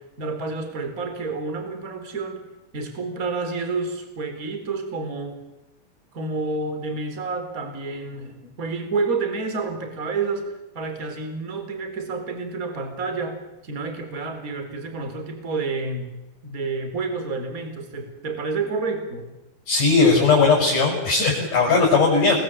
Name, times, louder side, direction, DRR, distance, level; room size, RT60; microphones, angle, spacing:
voice 1, 0.0-2.4 2.7-5.4 6.1-13.4 13.6-16.1 16.4-19.3, right 4 dB, 20° right, 7 dB, 4.0 m, -29 dB
voice 2, 19.7-22.4, left 4 dB, 40° left, -2 dB, 7.9 m, -18 dB
29.5 x 21.5 x 8.7 m, 0.95 s
omnidirectional pair, 5.8 m